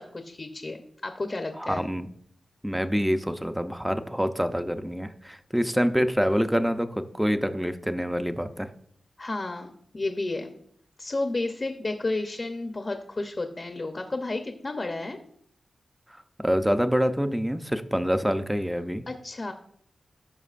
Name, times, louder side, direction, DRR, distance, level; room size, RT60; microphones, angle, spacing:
voice 1, 0.0-1.8 9.2-10.5 11.0-15.2 19.1-19.5, left 2 dB, 30° left, 5 dB, 0.7 m, -32 dB
voice 2, 1.6-2.1 2.6-8.7 16.4-19.0, equal, 5° right, 9 dB, 0.5 m, -26 dB
14.5 x 6.0 x 2.5 m, 0.68 s
wide cardioid pair, 165°, 0 cm